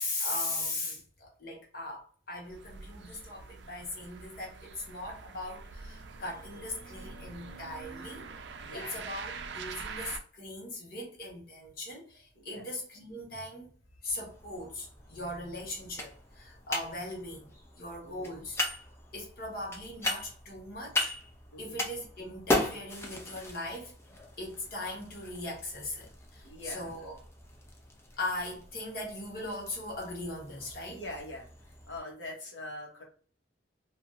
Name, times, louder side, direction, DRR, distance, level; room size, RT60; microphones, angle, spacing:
voice 1, 0.0-8.3 8.7-13.7 14.0-18.6 19.1-21.1 21.6-23.9 24.4-27.1 28.2-31.0, left 2 dB, 55° left, 1.2 m, -39 dB
sound 1, 2.4-10.2, right 4 dB, 75° right, 0.4 m, -45 dB
voice 2, 8.6-9.0 12.3-12.7 18.0-18.4 21.5-21.8 26.4-27.1 30.9-33.0, left 1 dB, 85° left, 1.1 m, -44 dB
sound 2, 14.1-32.0, left 2 dB, 15° left, 0.5 m, -38 dB
3.0 x 2.6 x 2.4 m
head